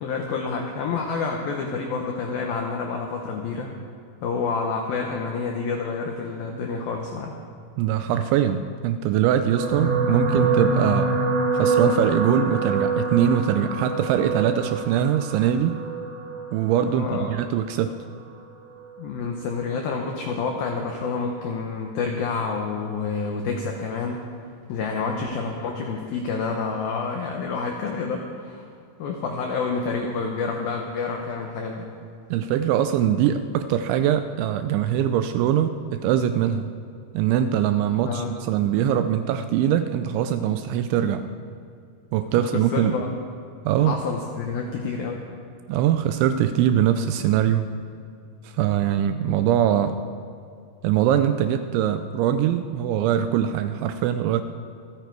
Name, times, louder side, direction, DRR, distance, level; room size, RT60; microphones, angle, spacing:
voice 1, 0.0-3.7 4.2-7.3 16.8-17.3 19.0-24.2 24.7-28.7 29.0-31.9 37.9-38.3 42.3-43.1 43.8-45.2, left 4 dB, 80° left, 2 dB, 2.1 m, -28 dB
voice 2, 7.8-11.1 11.5-15.8 16.5-18.0 32.3-36.7 37.1-41.3 42.1-43.0 43.7-44.0 45.7-47.7 48.4-50.0 50.8-54.4, right 10 dB, 85° right, 9 dB, 2.7 m, -22 dB
sound 1, 9.6-18.0 18.8-19.0 19.3-19.4, right 3 dB, 50° right, 6.5 m, -25 dB
26.5 x 9.2 x 4.6 m, 2.5 s
omnidirectional pair, 5.7 m